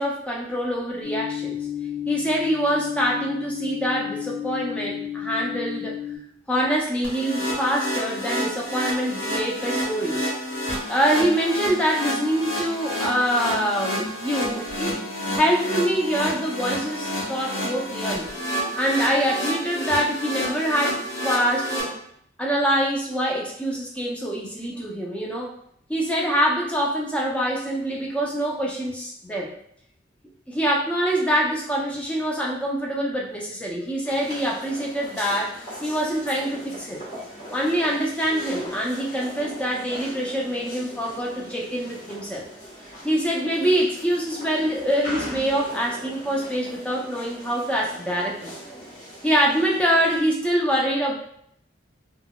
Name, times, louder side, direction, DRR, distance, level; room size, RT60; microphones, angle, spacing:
voice 1, 0.0-1.6 2.1-6.0 6.5-10.3 10.9-14.9 15.4-21.9 22.4-25.5 25.9-29.5 30.5-35.5 35.8-37.0 37.5-42.4 43.0-48.5 49.2-51.2, equal, 5° left, -3 dB, 0.5 m, -25 dB
sound 1, 1.0-6.2, left 10 dB, 55° left, 0.8 m, -31 dB
sound 2, 7.0-21.8, equal, 85° left, 1.0 m, -29 dB
sound 3, 34.0-50.2, equal, 40° left, 1.3 m, -40 dB
3.7 x 2.2 x 2.3 m, 0.69 s
head